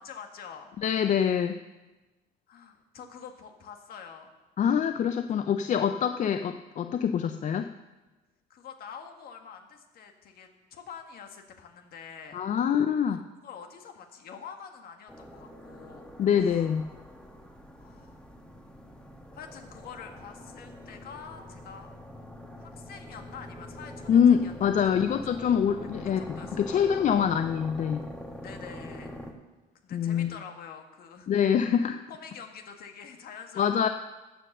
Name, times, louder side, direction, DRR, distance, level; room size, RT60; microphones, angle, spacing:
voice 1, 0.0-0.7 2.5-4.3 8.5-12.4 13.1-13.2 13.4-16.1 17.8-18.2 19.3-21.9 22.6-24.7 25.3-25.4 26.2-27.0 28.4-29.1 29.8-31.5 32.1-33.9, left 6 dB, 65° left, 5 dB, 1.7 m, -46 dB
voice 2, 0.8-1.6 4.6-7.7 12.3-13.2 16.2-16.9 24.1-28.0 29.9-30.3 31.3-32.0 33.6-33.9, left 8 dB, 45° left, 8 dB, 0.5 m, -25 dB
sound 1, 15.1-29.3, left 1 dB, 5° left, 1.4 m, -44 dB
13.0 x 7.7 x 6.7 m, 1.1 s
cardioid pair, 110°, 17 cm